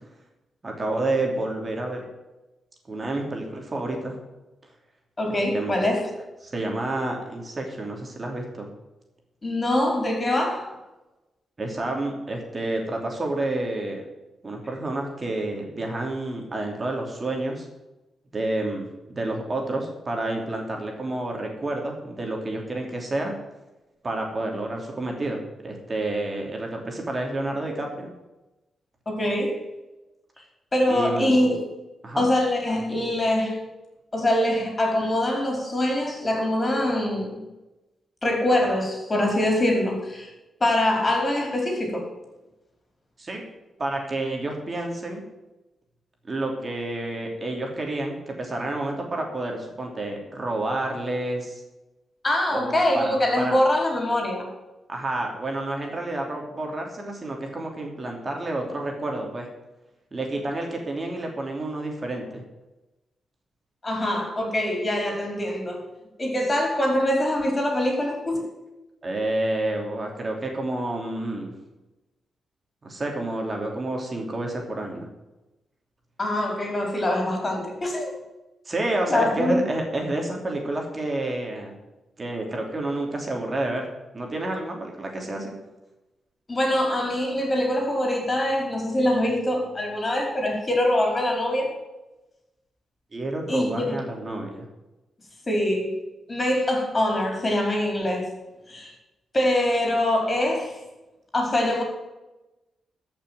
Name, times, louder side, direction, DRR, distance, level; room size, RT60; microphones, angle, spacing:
voice 1, 0.6-2.0 2.9-4.2 5.3-5.7 6.4-8.7 11.6-14.0 14.4-17.7 18.3-23.3 24.0-28.1 30.9-31.3 32.0-32.3 43.2-43.4 43.8-45.2 46.2-51.6 52.5-53.6 54.9-59.5 60.1-62.4 69.0-71.5 72.8-75.1 78.6-81.7 82.2-83.9 84.1-85.5 93.1-94.7, right 2 dB, 35° right, 1 dB, 2.9 m, -29 dB
voice 2, 5.2-6.0 9.4-10.7 29.1-29.6 30.7-31.6 32.2-33.6 34.1-37.4 38.2-40.3 40.6-42.1 52.2-54.5 63.8-65.8 66.2-68.4 76.2-78.1 79.1-79.6 86.5-91.7 93.5-94.0 95.5-95.9 96.3-98.3 98.7-98.9 99.3-100.8 101.3-101.8, left 1 dB, 30° left, 1 dB, 4.5 m, -24 dB
13.5 x 6.2 x 7.6 m, 1.0 s
cardioid pair, 70°, 0 cm